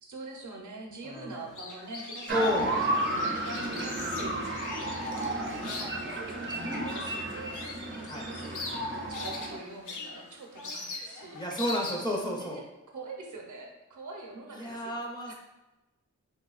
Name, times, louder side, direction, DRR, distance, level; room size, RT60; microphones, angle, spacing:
voice 1, 0.0-5.0 5.3-11.4 12.2-12.7 12.9-15.3, right 2 dB, 80° right, 0 dB, 0.6 m, -44 dB
voice 2, 1.0-1.4 2.3-2.7 5.6-5.8 8.1-8.3 11.3-12.6 14.5-15.3, equal, 15° left, -2 dB, 0.6 m, -31 dB
sound 1, 1.3-12.2, left 3 dB, 85° left, 0.5 m, -42 dB
sound 2, 2.3-9.6, right 1 dB, 40° right, 0.5 m, -32 dB
3.3 x 2.6 x 2.3 m, 0.99 s
wide cardioid pair, 100°, 30 cm